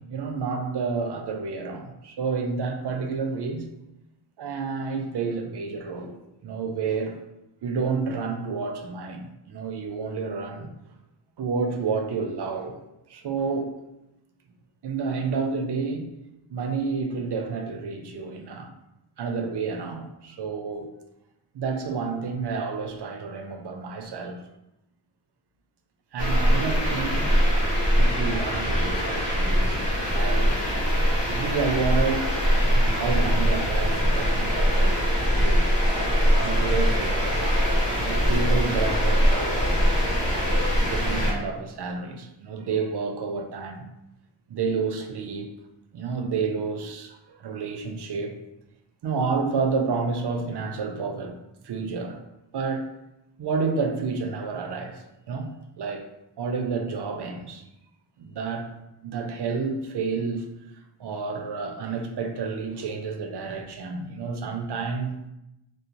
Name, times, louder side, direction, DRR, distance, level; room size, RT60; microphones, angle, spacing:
voice 1, 0.0-3.6 4.4-6.2 6.4-7.2 7.6-10.7 11.4-12.8 13.1-13.7 14.8-16.1 16.5-18.7 19.2-20.9 21.5-24.4 26.1-27.3 28.0-30.5 31.2-32.3 32.7-35.0 35.4-37.4 38.0-39.8 40.8-43.9 44.5-45.5 45.9-48.4 49.0-51.4 51.6-52.2 52.5-52.9 53.4-56.1 56.4-57.6 58.2-58.7 59.0-60.5 61.0-65.2, right 4 dB, 55° right, 0.5 m, -30 dB
sound 1, 26.2-41.3, equal, 60° left, 1.1 m, -22 dB
3.0 x 2.0 x 2.5 m
cardioid pair, 45°, 49 cm